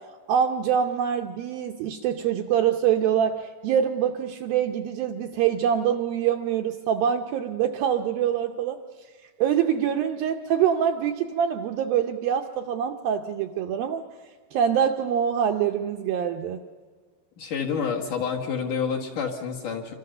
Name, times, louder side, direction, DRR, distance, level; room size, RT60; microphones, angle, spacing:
voice 1, 0.3-8.8 9.4-14.1 14.5-16.6, right 8 dB, 75° right, 5 dB, 2.2 m, -25 dB
voice 2, 17.4-19.9, left 6 dB, 55° left, 0 dB, 2.6 m, -28 dB
27.5 x 25.0 x 6.7 m, 1.5 s
omnidirectional pair, 5.1 m